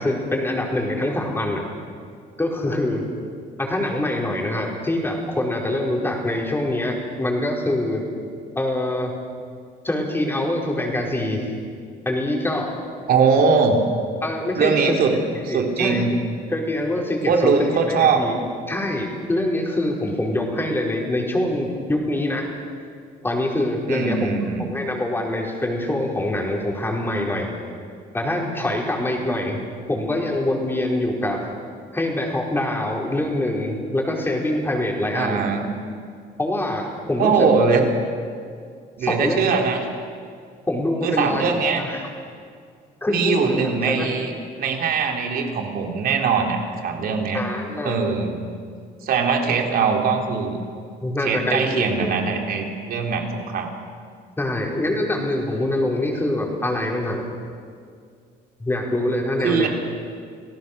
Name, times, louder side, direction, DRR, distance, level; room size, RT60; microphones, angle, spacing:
voice 1, 0.0-1.6 2.4-3.1 3.6-8.0 8.5-9.2 9.8-11.5 12.0-12.8 14.2-15.0 15.5-16.0 16.5-17.5 18.2-18.4 18.7-22.5 23.2-24.2 24.6-27.5 28.1-29.6 29.9-31.4 31.9-35.4 36.4-37.5 39.0-39.4 40.7-42.0 43.0-44.1 47.3-48.0 51.0-52.1 54.4-57.2 58.6-59.7, left 1 dB, 15° left, -1 dB, 4.9 m, -24 dB
voice 2, 13.1-13.8 14.6-15.1 15.4-16.1 17.3-18.3 23.9-24.7 35.1-35.7 37.2-37.9 39.0-39.8 41.0-41.8 43.1-44.3 44.6-47.4 47.8-48.4 49.0-50.6 51.2-53.7 59.4-59.7, right 5 dB, 60° right, 2 dB, 3.8 m, -21 dB
28.0 x 17.5 x 6.8 m, 2.2 s
cardioid pair, 110°, 17 cm